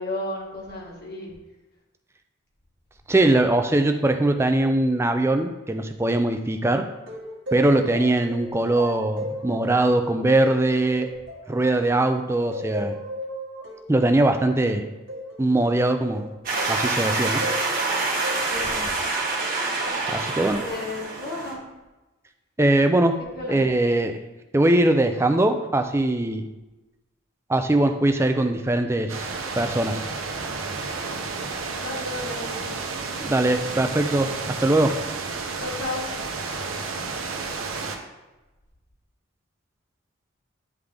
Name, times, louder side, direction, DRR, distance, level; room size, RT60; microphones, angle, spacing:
voice 1, 0.0-1.3 18.4-18.9 20.6-21.6 23.4-23.6 31.7-32.7 35.6-36.1, left 2 dB, 50° left, -3 dB, 1.6 m, -33 dB
voice 2, 3.1-6.8 7.5-11.1 11.5-13.0 13.9-14.8 15.4-16.2 16.7-17.4 20.1-20.6 22.6-23.1 23.5-24.1 24.5-26.4 27.5-30.0 33.2-34.9, right 2 dB, 10° right, 6 dB, 0.4 m, -21 dB
sound 1, 7.1-12.1 12.5-16.9 17.4-18.8 19.8-20.3, equal, 60° right, 1.2 m, -35 dB
sound 2, 16.5-21.5, right 3 dB, 45° right, 1.2 m, -26 dB
sound 3, 29.1-38.0, right 4 dB, 85° right, 0.8 m, -31 dB
9.5 x 3.6 x 3.4 m, 1.1 s
head